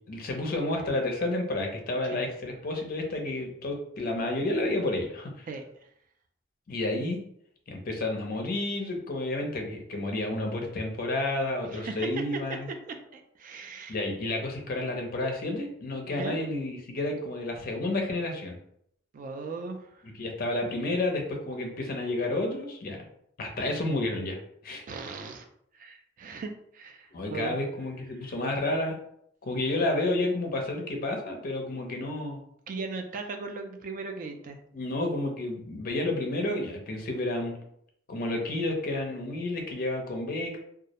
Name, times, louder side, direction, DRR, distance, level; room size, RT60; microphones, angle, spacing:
voice 1, 0.1-5.4 6.7-7.2 7.7-12.7 13.9-18.6 20.0-23.0 23.4-24.4 24.6-24.8 27.1-29.0 29.4-32.4 34.7-37.5 38.1-40.6, left 2 dB, 50° left, 2 dB, 0.5 m, -30 dB
voice 2, 11.7-12.6 13.1-13.9 16.1-16.4 19.1-19.9 24.9-25.5 25.7-27.6 32.7-34.6, right 4 dB, 45° right, 6 dB, 0.3 m, -38 dB
2.3 x 2.0 x 2.8 m, 0.71 s
head